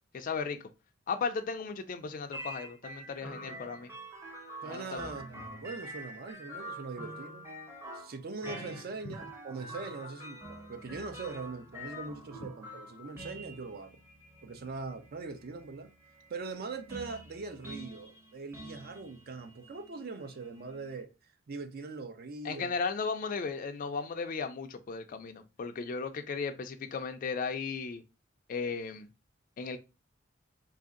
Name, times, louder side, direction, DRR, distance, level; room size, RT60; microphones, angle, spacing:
voice 1, 0.1-0.6 1.1-3.9 4.7-5.1 22.4-28.0 28.5-29.1 29.6-29.8, left 5 dB, 45° left, 0.4 m, -35 dB
sound 1, 2.3-21.0, equal, 15° right, 0.7 m, -46 dB
voice 2, 4.6-7.4 7.9-14.0 14.4-15.9 16.3-21.1 21.5-22.8, right 4 dB, 50° right, 0.5 m, -41 dB
3.1 x 2.6 x 3.6 m
head